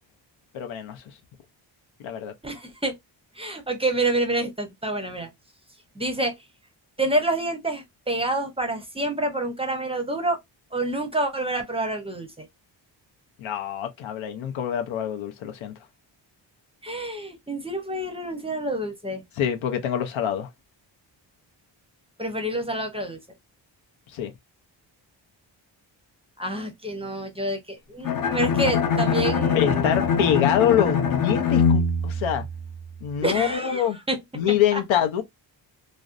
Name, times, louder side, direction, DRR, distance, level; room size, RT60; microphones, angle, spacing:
voice 1, 0.5-1.0 2.0-2.3 13.4-15.7 19.4-20.5 24.1-24.3 29.5-32.4 33.0-34.0 34.3-35.2, left 9 dB, 90° left, 0.6 m, -25 dB
voice 2, 2.4-3.0 3.4-5.3 6.0-6.3 7.0-10.4 10.7-12.5 16.8-19.2 22.2-23.2 26.4-29.8 33.2-34.2 34.7-34.8, right 1 dB, 15° right, 0.5 m, -28 dB
Bowed string instrument, 28.0-33.1, left 5 dB, 45° left, 0.5 m, -23 dB
2.5 x 2.1 x 2.4 m
cardioid pair, 110°, 46 cm